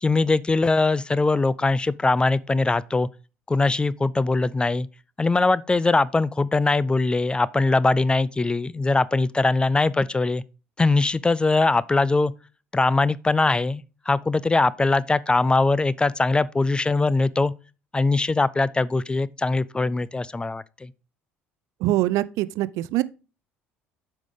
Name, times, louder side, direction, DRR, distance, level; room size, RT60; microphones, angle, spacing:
voice 1, 0.0-3.1 3.5-4.9 5.2-10.4 10.8-12.3 12.7-17.5 17.9-20.9, left 3 dB, 15° left, 0.3 m, -21 dB
voice 2, 21.8-23.0, right 16 dB, 55° right, 0.4 m, -23 dB
8.2 x 5.2 x 3.6 m
figure-of-eight pair, 55°, 7 cm